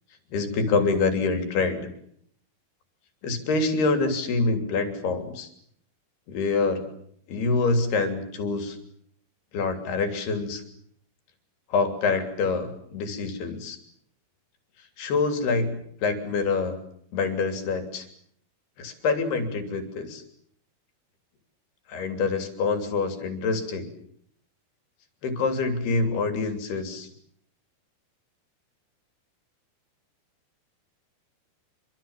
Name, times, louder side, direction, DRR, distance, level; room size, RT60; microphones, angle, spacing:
voice 1, 0.3-1.9 3.2-5.5 6.3-6.9 7.3-8.8 9.5-10.6 11.7-13.8 15.0-16.8 17.1-18.1 18.8-20.2 21.9-23.9 25.2-27.1, left 4 dB, 80° left, 7 dB, 5.2 m, -26 dB
27.0 x 24.5 x 7.4 m, 0.67 s
omnidirectional pair, 4.5 m